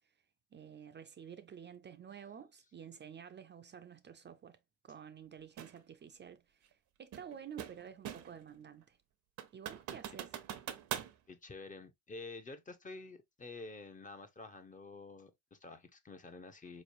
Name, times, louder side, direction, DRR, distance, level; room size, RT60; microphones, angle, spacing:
voice 1, 0.5-9.0 9.5-10.3, right 8 dB, 35° right, 0.5 m, -51 dB
sound 1, 5.6-5.8 7.1-8.4 8.8-8.9 9.4-11.1, right 10 dB, 70° right, 0.7 m, -43 dB
voice 2, 11.3-16.8, left 3 dB, 25° left, 0.7 m, -49 dB
4.1 x 3.1 x 2.5 m
cardioid pair, 90°, 30 cm